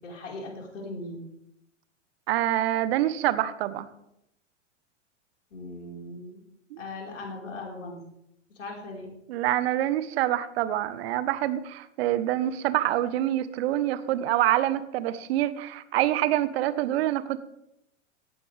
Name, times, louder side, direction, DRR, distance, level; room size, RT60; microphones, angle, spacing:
voice 1, 0.0-1.2 5.5-6.4 6.8-8.0 8.6-9.1, left 2 dB, 75° left, -1 dB, 4.8 m, -39 dB
voice 2, 2.3-3.9 6.7-6.8 9.3-17.4, right 13 dB, 55° right, 14 dB, 1.2 m, -26 dB
18.0 x 14.0 x 3.5 m, 0.81 s
figure-of-eight pair, 100°, 37 cm